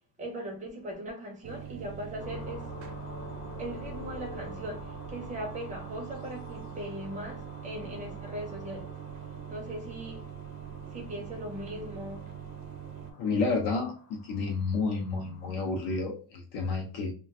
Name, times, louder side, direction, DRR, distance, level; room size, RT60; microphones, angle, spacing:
voice 1, 0.2-2.7 3.6-8.9 9.5-10.3 10.9-12.3, right 1 dB, 15° right, 0.5 m, -39 dB
sound 1, 1.4-13.1, right 9 dB, 75° right, 0.8 m, -43 dB
sound 2, 2.2-16.0, left 2 dB, 80° left, 1.0 m, -48 dB
voice 2, 13.2-17.1, left 4 dB, 55° left, 0.6 m, -30 dB
2.4 x 2.3 x 3.4 m
cardioid pair, 175°, 47 cm